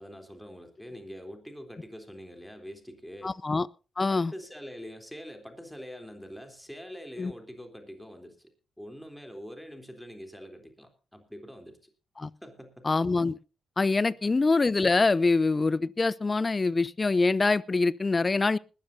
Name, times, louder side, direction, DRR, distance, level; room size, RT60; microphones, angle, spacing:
voice 1, 0.0-3.3 4.1-8.5 8.8-11.9 12.4-12.9 14.0-14.3, equal, 5° left, 3.6 m, -44 dB
voice 2, 3.2-3.7 4.0-4.3 7.2-7.3 12.2-12.3 12.8-13.3 13.8-18.6, left 3 dB, 35° left, 0.6 m, -24 dB
20.0 x 13.5 x 2.7 m
hypercardioid pair, 45°, 0 cm